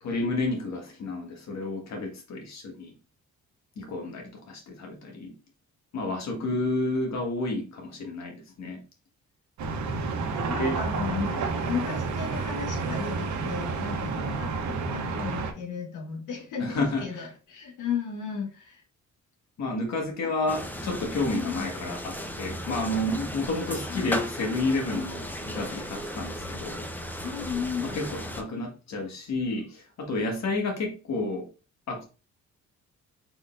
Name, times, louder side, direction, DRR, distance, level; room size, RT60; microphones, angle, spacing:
voice 1, 0.0-2.9 3.8-5.4 5.9-8.8 10.6-10.8 11.3-11.4 16.6-17.3 19.6-26.9 27.8-31.5 31.9-32.1, left 2 dB, 60° left, 1.7 m, -30 dB
sound 1, 9.6-15.5, right 4 dB, 70° right, 1.0 m, -30 dB
voice 2, 10.4-11.4 11.6-18.8 21.3-21.7 23.9-24.1 27.2-28.0, left 7 dB, 90° left, 1.5 m, -34 dB
sound 2, 20.5-28.4, equal, 5° left, 0.8 m, -36 dB
4.9 x 4.0 x 2.6 m
cardioid pair, 90°, 30 cm